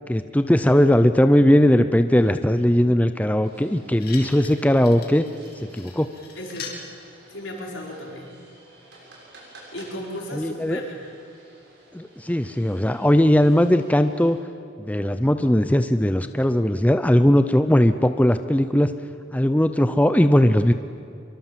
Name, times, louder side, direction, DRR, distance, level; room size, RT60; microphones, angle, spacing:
voice 1, 0.1-5.2 5.7-6.1 10.3-10.8 11.9-14.4 14.8-18.9 19.3-20.7, equal, 10° left, 9 dB, 0.6 m, -19 dB
sound 1, 3.4-14.3, right 1 dB, 60° right, 6.9 m, -51 dB
sound 2, 3.6-3.7 4.0-6.8 7.8-7.9, left 5 dB, 50° left, 3.1 m, -41 dB
voice 2, 6.4-6.7 7.3-8.3 9.7-10.9, equal, 80° left, -1 dB, 5.2 m, -34 dB
25.0 x 23.0 x 7.5 m, 2.4 s
head